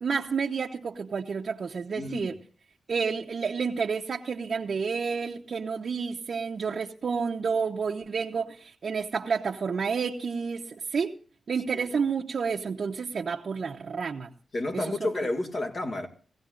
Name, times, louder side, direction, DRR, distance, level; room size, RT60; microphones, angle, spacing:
voice 1, 0.0-2.3 2.9-11.1 11.5-14.3 14.7-15.1, right 5 dB, 60° right, 0.8 m, -30 dB
voice 2, 1.9-2.3 11.7-11.9 14.5-16.1, left 2 dB, 50° left, 2.1 m, -31 dB
20.5 x 16.0 x 2.5 m
cardioid pair, 85°, 0 cm